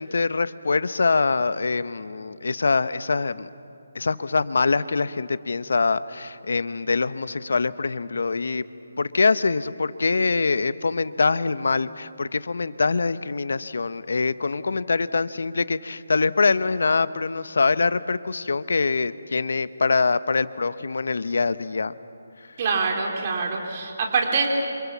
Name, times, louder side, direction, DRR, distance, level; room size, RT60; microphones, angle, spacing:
voice 1, 0.0-3.5 3.9-8.6 9.0-21.9, left 4 dB, 75° left, 15 dB, 0.9 m, -24 dB
voice 2, 22.6-24.5, right 4 dB, 35° right, 0 dB, 3.5 m, -24 dB
28.0 x 27.0 x 7.3 m, 2.6 s
hypercardioid pair, 170°, 0 cm